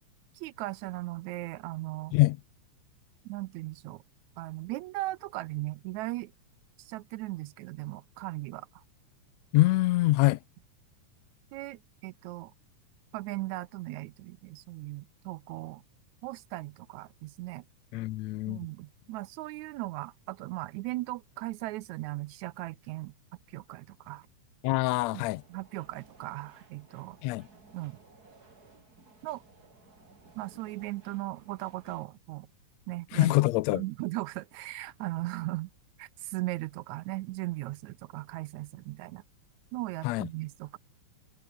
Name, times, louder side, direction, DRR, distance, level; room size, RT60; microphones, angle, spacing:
voice 1, 0.3-2.1 3.2-4.0 4.4-6.3 6.8-8.8 11.5-12.5 13.1-15.8 16.2-17.7 18.5-23.1 23.5-24.3 25.1-27.2 27.7-28.0 29.2-29.4 30.4-32.5 32.9-33.3 33.7-35.7 36.0-39.2 39.7-40.8, right 19 dB, 80° right, 1.7 m, -38 dB
voice 2, 9.5-10.4 17.9-18.6 24.6-25.4 27.2-27.5 33.1-33.8 40.0-40.3, left 19 dB, 80° left, 1.6 m, -25 dB
sound 1, 25.2-32.1, right 3 dB, 30° right, 3.8 m, -58 dB
omnidirectional pair, 3.7 m